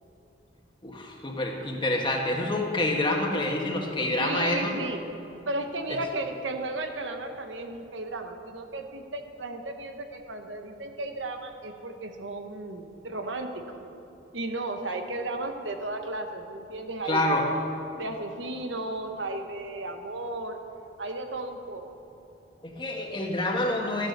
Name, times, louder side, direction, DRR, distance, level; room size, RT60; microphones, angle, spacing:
voice 1, 0.8-4.7 17.1-17.5 22.6-24.1, left 1 dB, 25° left, 0 dB, 1.6 m, -27 dB
voice 2, 4.2-5.0 5.5-13.8 14.3-17.3 17.9-20.6 21.0-21.8, right 2 dB, 85° right, 5 dB, 1.2 m, -34 dB
13.5 x 9.5 x 6.6 m, 2.9 s
head